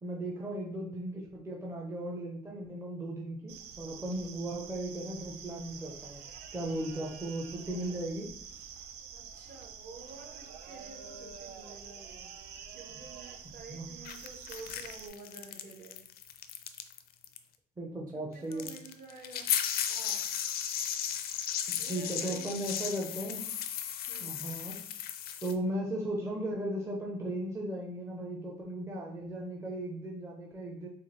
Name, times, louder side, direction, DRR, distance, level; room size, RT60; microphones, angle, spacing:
voice 1, 0.0-6.2 6.5-8.3 13.7-14.0 17.8-18.7 21.9-23.4 24.2-24.8 25.4-30.9, right 1 dB, 15° right, -1 dB, 0.6 m, -36 dB
sound 1, 3.5-15.1, right 7 dB, 75° right, 0.5 m, -47 dB
voice 2, 9.1-12.3 12.7-16.0 18.3-19.5 19.9-20.3 21.8-22.6 24.1-24.4, right 3 dB, 55° right, -1 dB, 1.2 m, -50 dB
sound 2, 14.1-17.0 17.2-17.4 18.5-25.5, left 9 dB, 65° left, 0.4 m, -35 dB
4.4 x 2.4 x 3.1 m, 0.65 s
cardioid pair, 110°, 17 cm